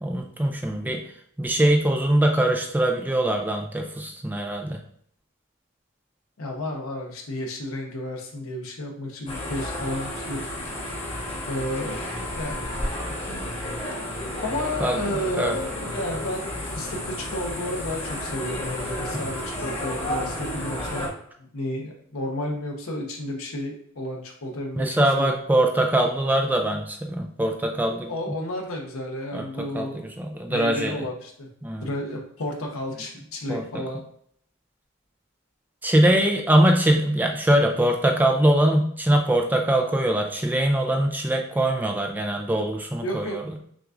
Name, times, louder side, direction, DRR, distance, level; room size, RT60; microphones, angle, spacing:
voice 1, 0.0-1.0 1.4-4.8 14.8-15.0 15.4-15.5 19.1-19.2 24.8-28.1 29.3-29.9 30.2-30.9 31.6-31.9 33.5-33.6 35.8-43.4, right 1 dB, 10° right, 2 dB, 0.3 m, -22 dB
voice 2, 6.4-10.4 11.5-12.0 12.3-12.7 14.2-21.1 21.4-25.4 28.1-30.1 30.5-31.5 31.8-34.0 43.0-43.4, left 1 dB, 70° left, 1 dB, 0.9 m, -32 dB
sound 1, 9.3-21.1, left 1 dB, 25° left, 0.9 m, -32 dB
6.0 x 2.4 x 2.5 m, 0.65 s
head